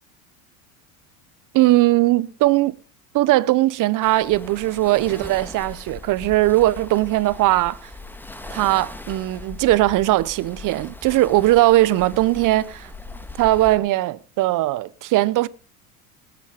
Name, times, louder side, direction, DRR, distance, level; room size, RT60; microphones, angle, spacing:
voice 1, 1.5-2.7 3.1-7.8 8.5-12.9 13.4-15.5, right 17 dB, 45° right, 0.9 m, -19 dB
sound 1, 4.0-13.8, left 2 dB, 5° left, 1.7 m, -39 dB
19.5 x 8.6 x 5.0 m
supercardioid pair, 100°, 44 cm